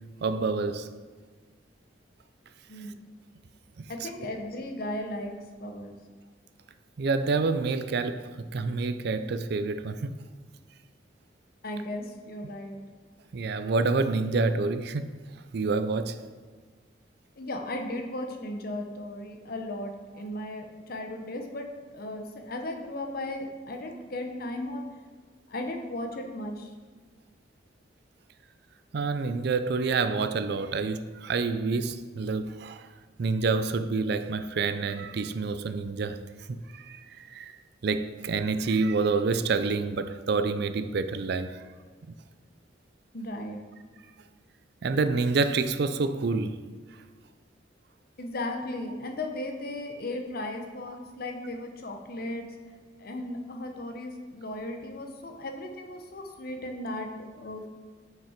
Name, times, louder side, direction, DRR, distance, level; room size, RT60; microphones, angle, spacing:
voice 1, 0.2-0.9 7.0-10.2 13.3-15.2 15.5-16.2 28.9-32.9 33.2-36.2 36.7-37.6 37.8-41.6 44.8-46.6, right 4 dB, 60° right, 0.4 m, -28 dB
voice 2, 3.9-5.9 11.6-12.8 17.4-21.7 21.9-24.8 25.5-26.7 43.1-43.6 48.2-52.5 53.0-57.7, left 1 dB, 50° left, 0.9 m, -36 dB
5.9 x 5.4 x 5.0 m
head